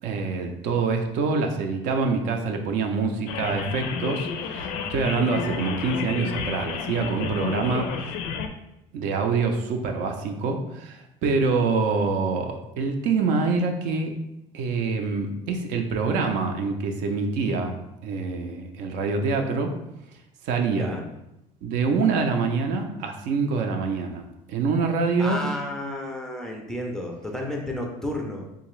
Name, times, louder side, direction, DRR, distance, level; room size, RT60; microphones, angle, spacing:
voice 1, 0.0-7.9 8.9-14.1 14.5-17.8 18.0-19.7 20.5-20.9 21.6-24.2 24.5-25.4, right 4 dB, 65° right, 4 dB, 0.5 m, -25 dB
sound 1, 3.3-8.5, left 6 dB, 80° left, 0.4 m, -31 dB
voice 2, 20.7-21.1 25.2-28.6, left 1 dB, 5° left, 0 dB, 0.4 m, -32 dB
3.6 x 2.8 x 3.1 m, 0.87 s
cardioid pair, 145°, 14 cm